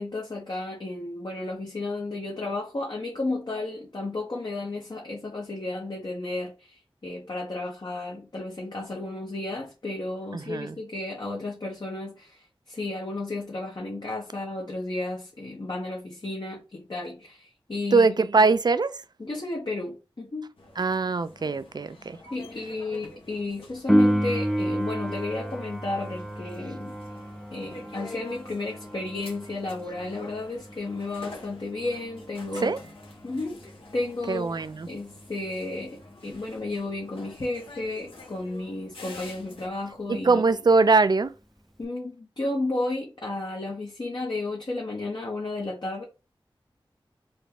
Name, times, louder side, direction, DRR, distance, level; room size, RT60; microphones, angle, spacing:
voice 1, 0.0-18.2 19.2-20.5 22.3-27.0 27.5-32.8 33.2-40.4 41.8-46.0, left 2 dB, 50° left, 0.9 m, -33 dB
voice 2, 10.3-10.8 17.9-18.9 20.8-22.2 32.6-32.8 34.3-34.9 40.2-41.3, right 4 dB, 50° right, 0.4 m, -22 dB
sound 1, 20.6-39.7, left 2 dB, 75° left, 1.1 m, -48 dB
Piano, 23.9-34.3 41.8-41.9, equal, ahead, 0.5 m, -30 dB
4.0 x 2.2 x 3.5 m
wide cardioid pair, 45°, 9 cm